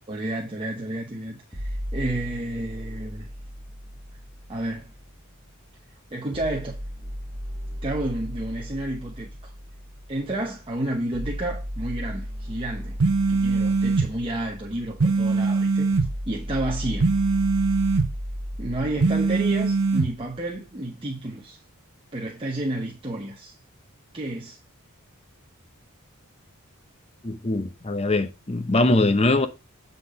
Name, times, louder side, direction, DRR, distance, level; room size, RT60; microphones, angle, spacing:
voice 1, 0.1-3.3 4.5-4.9 6.1-6.9 7.8-9.5 10.1-13.0 13.3-15.9 16.3-17.2 18.6-21.6 22.1-23.5 24.1-24.6, right 1 dB, 25° right, 1.0 m, -31 dB
sound 1, 1.5-5.5 6.3-20.4, equal, 10° right, 1.6 m, -36 dB
sound 2, 13.0-14.1 15.0-16.1 17.0-18.1 19.0-20.1, right 4 dB, 70° right, 0.8 m, -21 dB
voice 2, 27.2-29.5, left 2 dB, 30° left, 0.7 m, -22 dB
8.2 x 4.1 x 5.2 m
head